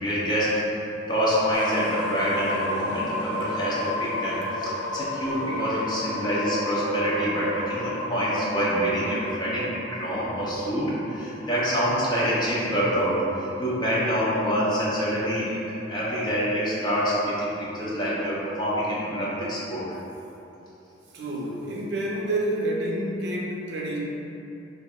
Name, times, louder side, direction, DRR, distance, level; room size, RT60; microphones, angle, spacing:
voice 1, 0.0-19.8, equal, 20° left, -8 dB, 0.6 m, -26 dB
sound 1, 1.5-13.3, left 2 dB, 70° left, 0.3 m, -33 dB
voice 2, 21.1-24.0, right 1 dB, 60° right, -3 dB, 0.5 m, -28 dB
5.1 x 2.4 x 2.3 m, 3.0 s
head